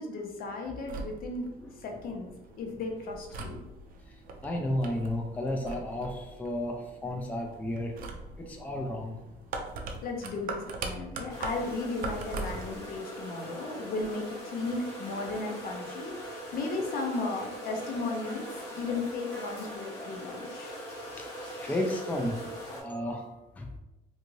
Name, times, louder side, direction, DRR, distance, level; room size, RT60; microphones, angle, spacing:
voice 1, 0.0-1.5 1.8-3.6 10.0-18.4 18.7-20.7, left 3 dB, 60° left, 1 dB, 0.7 m, -35 dB
sound 1, 0.7-12.8, right 3 dB, 55° right, 0.5 m, -42 dB
voice 2, 4.4-8.0 8.4-9.2 21.2-21.3 21.5-23.8, left 1 dB, 10° left, 1 dB, 0.4 m, -33 dB
sound 2, 11.3-22.8, equal, 80° left, 1.2 m, -41 dB
2.6 x 2.5 x 3.0 m, 0.96 s
cardioid pair, 110°, 17 cm